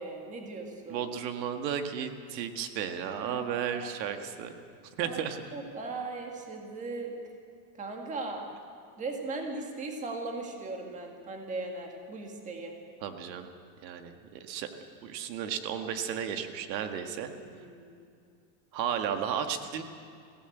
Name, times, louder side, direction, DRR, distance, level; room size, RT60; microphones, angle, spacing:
voice 1, 0.0-1.1 3.1-4.2 5.0-5.3 5.5-7.1 7.8-8.5 9.0-12.7 17.3-18.0, right 3 dB, 15° right, 2 dB, 1.8 m, -38 dB
voice 2, 0.9-4.5 5.0-5.4 13.0-13.5 13.8-14.7 15.0-17.3 18.7-19.8, right 8 dB, 85° right, 7 dB, 1.9 m, -34 dB
23.0 x 16.0 x 8.0 m, 2.4 s
supercardioid pair, 180°, 49 cm